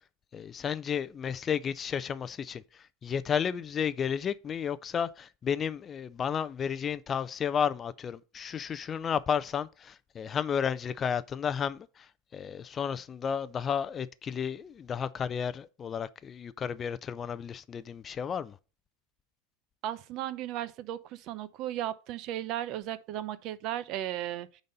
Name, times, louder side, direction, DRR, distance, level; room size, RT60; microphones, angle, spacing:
voice 1, 0.3-18.6, left 7 dB, 25° left, 0.4 m, -32 dB
voice 2, 19.8-24.6, right 12 dB, 45° right, 0.6 m, -35 dB
9.4 x 4.1 x 5.2 m
supercardioid pair, 145°, 0 cm